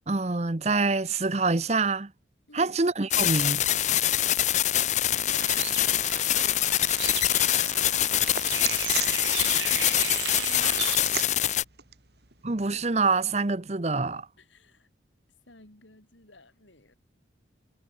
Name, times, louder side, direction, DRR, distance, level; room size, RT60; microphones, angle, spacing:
voice 1, 0.1-2.1 2.5-3.6 12.4-14.3, right 3 dB, 35° right, 0.9 m, -26 dB
sound 1, 3.1-11.6, left 12 dB, 40° left, 0.5 m, -24 dB
voice 2, 5.0-6.7 7.5-8.2 10.3-11.5 14.4-14.9 15.5-16.9, left 1 dB, 85° left, 5.2 m, -53 dB
Bird, 5.3-11.0, right 12 dB, 75° right, 0.6 m, -36 dB
sound 2, 6.4-13.2, right 8 dB, 60° right, 2.8 m, -41 dB
head